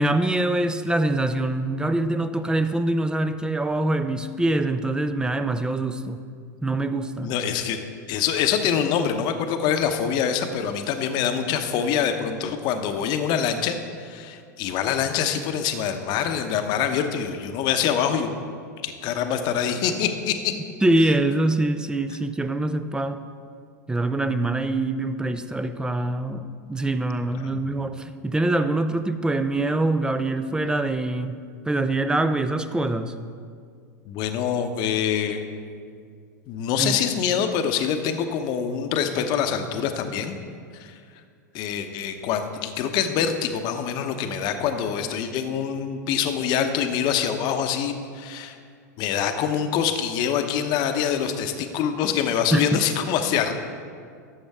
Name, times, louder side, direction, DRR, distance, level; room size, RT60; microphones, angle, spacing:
voice 1, 0.0-6.3 6.6-7.3 20.8-23.2 23.9-31.4 31.7-33.1 36.8-37.0 52.5-52.8, right 2 dB, 10° right, 11 dB, 0.5 m, -24 dB
voice 2, 7.2-7.8 8.1-18.3 18.8-20.5 27.4-27.6 34.1-35.4 36.5-40.4 40.7-40.9 41.5-48.6 49.0-53.5, left 8 dB, 50° left, 7 dB, 0.8 m, -25 dB
12.0 x 7.2 x 3.5 m, 2.2 s
hypercardioid pair, 95°, 9 cm